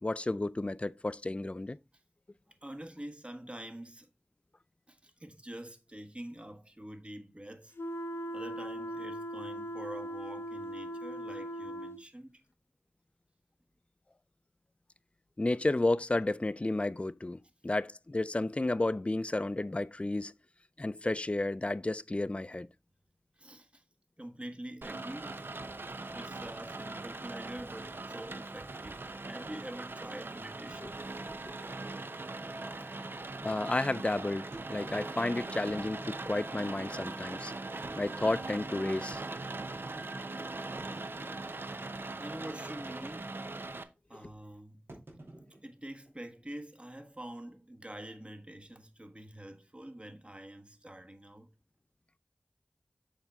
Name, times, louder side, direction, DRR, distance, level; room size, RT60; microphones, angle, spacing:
voice 1, 0.0-1.8 15.4-20.3 20.8-22.7 30.8-30.9 33.4-37.5 38.0-39.2 44.2-44.3, left 2 dB, 30° left, 0.4 m, -32 dB
voice 2, 2.5-4.1 4.9-7.7 8.3-12.4 23.4-23.8 24.2-25.4 26.1-31.0 32.7-33.0 42.2-43.5 44.1-44.8 45.6-51.5, right 1 dB, 30° right, 1.4 m, -46 dB
sound 1, 7.8-12.0, equal, 80° left, 0.8 m, -39 dB
Rain, 24.8-43.8, right 2 dB, 60° right, 0.8 m, -41 dB
sound 2, 30.7-30.8 31.1-31.2 31.8-31.9 34.5-35.7 36.5-36.6 37.7-39.1 39.6-39.7 40.8-41.9 42.1-42.5 42.8-43.1 44.9-46.5, right 1 dB, 80° right, 2.8 m, -52 dB
6.9 x 5.5 x 3.6 m
wide cardioid pair, 45°, 4 cm